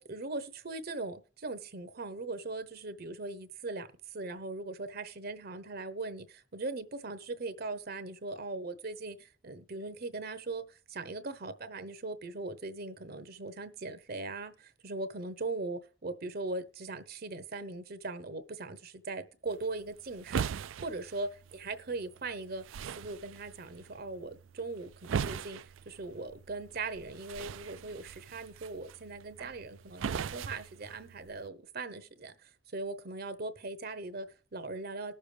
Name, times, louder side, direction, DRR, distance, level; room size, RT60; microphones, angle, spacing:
voice 1, 0.0-3.9 4.1-20.4 20.8-22.6 23.0-25.6 25.9-32.3 32.7-35.1, right 3 dB, 50° right, 0.8 m, -40 dB
sound 1, 19.5-31.5, right 6 dB, 75° right, 0.4 m, -40 dB
19.5 x 6.7 x 3.3 m
head